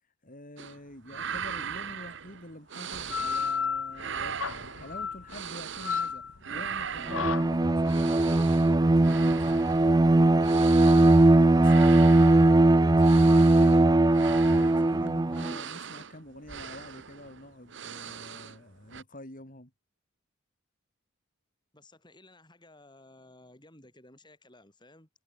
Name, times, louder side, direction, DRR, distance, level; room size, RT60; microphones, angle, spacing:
voice 1, 0.2-6.2 6.5-19.7, left 1 dB, 40° left, 6.4 m, -47 dB
sound 1, 0.6-0.8 1.0-3.6 3.9-6.1 6.4-18.6 18.9-19.0, right 7 dB, 60° right, 1.2 m, -40 dB
sound 2, 2.9-12.1, left 6 dB, 90° left, 1.7 m, -35 dB
Bowed string instrument, 7.1-15.6, right 2 dB, 20° right, 0.5 m, -20 dB
voice 2, 21.7-25.1, left 2 dB, 20° left, 7.7 m, -55 dB
head